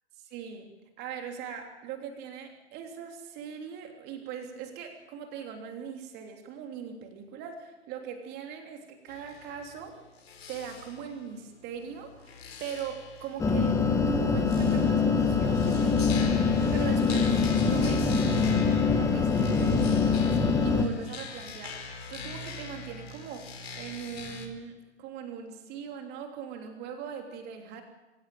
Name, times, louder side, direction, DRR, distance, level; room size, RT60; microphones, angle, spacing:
voice 1, 0.2-0.7 1.0-10.0 10.5-16.4 16.7-27.8, right 7 dB, 30° right, 4 dB, 3.3 m, -41 dB
sound 1, 9.1-24.5, left 4 dB, 60° left, 4.3 m, -43 dB
sound 2, 13.4-20.9, left 4 dB, 10° left, 1.9 m, -24 dB
24.0 x 17.0 x 8.9 m, 1.1 s
figure-of-eight pair, 115°, 35 cm